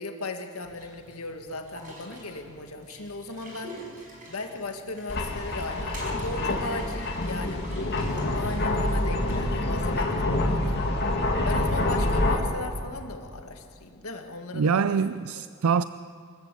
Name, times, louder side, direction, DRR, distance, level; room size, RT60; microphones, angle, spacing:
voice 1, 0.0-3.8 4.3-7.8 8.1-10.8 11.4-15.0, left 2 dB, 85° left, 1.8 m, -37 dB
sound 1, 0.6-9.9, right 1 dB, 35° right, 5.4 m, -46 dB
sound 2, 5.1-12.4, left 1 dB, 50° left, 2.3 m, -26 dB
voice 2, 14.5-15.8, right 6 dB, 80° right, 0.4 m, -24 dB
24.0 x 14.5 x 8.4 m
head